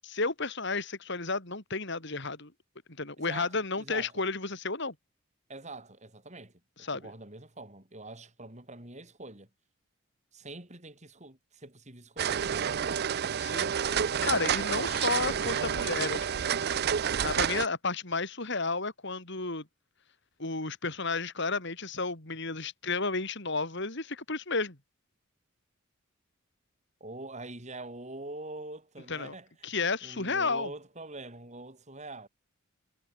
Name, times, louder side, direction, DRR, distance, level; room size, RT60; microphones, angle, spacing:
voice 1, 0.0-2.5 3.0-4.9 6.8-7.0 13.4-16.5 17.2-19.6 20.4-24.8 29.1-29.3 29.6-30.7, left 3 dB, 55° left, 4.1 m, -32 dB
voice 2, 3.2-4.2 5.5-9.5 10.3-12.8 27.0-32.3, right 2 dB, 35° right, 5.6 m, -45 dB
sound 1, 12.2-17.7, right 8 dB, 50° right, 0.5 m, -29 dB
head